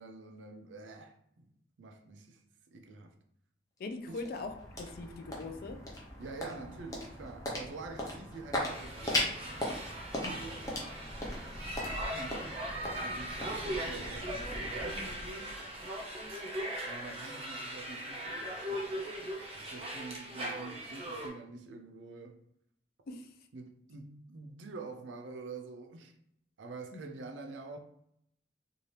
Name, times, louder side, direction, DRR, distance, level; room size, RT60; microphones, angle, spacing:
voice 1, 0.0-1.5 1.8-2.4 2.7-3.1 4.1-4.3 6.2-9.8 10.3-10.7 11.8-12.6 13.0-15.6 16.8-22.4 23.5-26.1 26.6-27.8, right 3 dB, 85° right, 0.5 m, -47 dB
voice 2, 3.8-5.8 10.2-10.5 10.8-10.9 23.1-23.3, left 3 dB, 55° left, 0.4 m, -41 dB
sound 1, 3.8-16.2, left 1 dB, 20° left, 0.7 m, -39 dB
sound 2, 8.6-21.3, right 1 dB, 35° right, 0.7 m, -39 dB
2.8 x 2.3 x 3.2 m
head